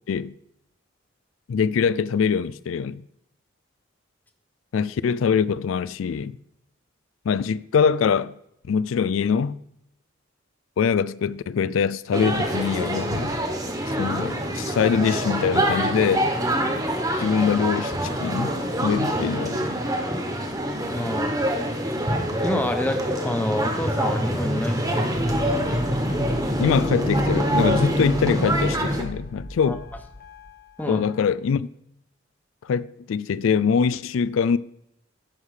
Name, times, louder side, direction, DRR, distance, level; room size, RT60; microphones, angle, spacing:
voice 1, 1.5-3.0 4.7-6.4 7.3-8.3 8.6-9.6 10.8-13.3 13.9-16.3 17.2-19.8 26.6-29.8 30.9-31.7 32.6-34.6, left 6 dB, 90° left, 0.4 m, -23 dB
sound 1, 12.1-29.0, equal, 20° right, 1.3 m, -25 dB
voice 2, 20.9-21.3 22.4-25.2 29.7-29.8 30.8-31.0, left 1 dB, 10° left, 1.0 m, -28 dB
sound 2, 25.1-31.3, left 1 dB, 50° left, 1.1 m, -39 dB
10.5 x 4.9 x 6.5 m
head